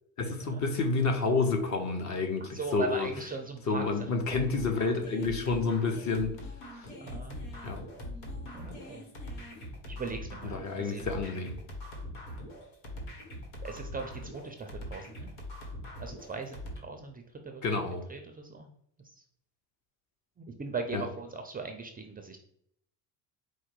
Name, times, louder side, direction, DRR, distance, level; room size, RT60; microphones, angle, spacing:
voice 1, 0.2-3.1 3.7-6.4 6.8-6.9 7.6-7.8 10.4-11.6 17.6-18.0 20.9-21.1, left 3 dB, 40° left, 5 dB, 0.9 m, -29 dB
voice 2, 2.4-4.4 7.0-7.4 8.5-9.1 9.9-11.1 13.6-15.3 16.0-17.6 18.1-18.7 20.4-22.4, right 4 dB, 20° right, 5 dB, 0.4 m, -39 dB
sound 1, 4.3-16.8, left 1 dB, 85° left, 1.4 m, -42 dB
4.7 x 2.1 x 4.6 m, 0.71 s
supercardioid pair, 90°, 44 cm